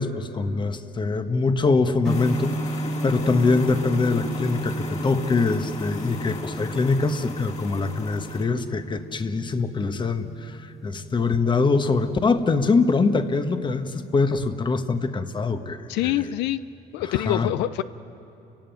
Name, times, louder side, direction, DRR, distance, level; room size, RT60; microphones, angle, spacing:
voice 1, 0.0-16.3 17.1-17.5, left 4 dB, 30° left, 9 dB, 1.3 m, -24 dB
sound 1, 2.0-8.4, left 4 dB, 45° left, 2.7 m, -36 dB
sound 2, 2.1-14.1, right 2 dB, ahead, 0.7 m, -34 dB
voice 2, 15.9-16.6 16.9-17.8, left 14 dB, 90° left, 13 dB, 0.6 m, -25 dB
30.0 x 16.5 x 9.3 m, 3.0 s
cardioid pair, 110°, 17 cm